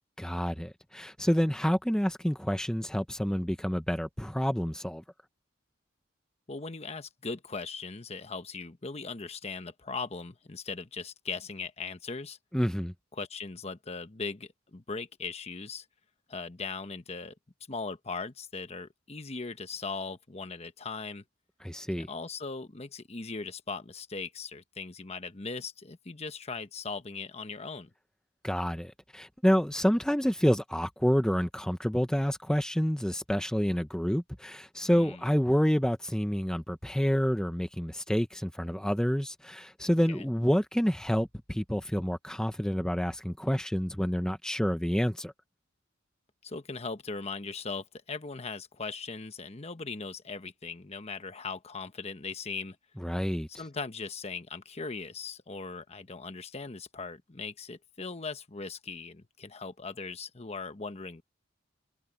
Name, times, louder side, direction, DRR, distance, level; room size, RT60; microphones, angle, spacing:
voice 1, 0.2-5.0 12.5-12.9 21.6-22.1 28.4-45.3 53.0-53.5, equal, 5° left, 0.8 m, -28 dB
voice 2, 6.5-12.4 13.1-15.8 16.3-17.3 17.7-21.2 21.9-27.9 34.9-35.2 40.1-40.3 46.4-52.8 53.6-61.2, left 4 dB, 35° left, 1.1 m, -39 dB
head